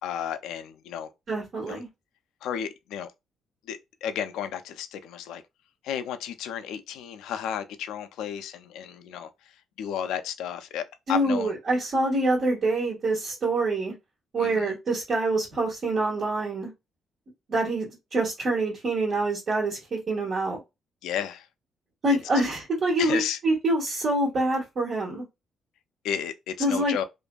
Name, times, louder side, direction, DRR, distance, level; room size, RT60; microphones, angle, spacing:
voice 1, 0.0-1.1 1.7-1.8 2.4-3.1 3.7-5.4 5.8-9.3 9.8-11.5 14.4-14.7 21.0-21.5 22.1-22.2 23.0-23.4 26.0-27.0, left 9 dB, 85° left, 0.3 m, -33 dB
voice 2, 1.3-1.9 11.1-13.9 14.3-16.7 17.5-20.6 22.0-25.2 26.6-27.0, right 2 dB, 55° right, 1.3 m, -26 dB
2.5 x 2.4 x 2.2 m
cardioid pair, 90°, 0 cm